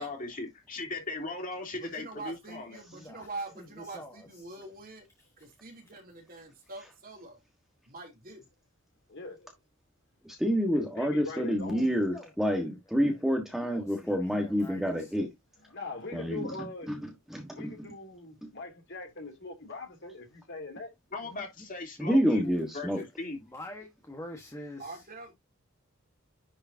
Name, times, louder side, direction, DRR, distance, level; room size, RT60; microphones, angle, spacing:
voice 1, 0.0-2.8 21.1-23.4, left 2 dB, 40° left, 3.1 m, -38 dB
voice 2, 1.8-5.0 5.4-7.4 7.9-8.5 24.8-25.3, right 3 dB, 45° right, 2.9 m, -44 dB
voice 3, 2.9-3.3 3.6-4.5 5.2-5.5 11.9-12.6 13.0-13.1 13.5-15.1 21.3-21.5 23.4-25.0, left 1 dB, 15° left, 1.4 m, -46 dB
voice 4, 9.1-9.5 11.0-11.8 15.7-16.9 17.5-20.9, left 3 dB, 60° left, 2.9 m, -42 dB
voice 5, 10.2-15.3 16.1-17.7 18.4-18.5 22.0-23.0, equal, ahead, 1.4 m, -28 dB
10.5 x 4.9 x 2.8 m
head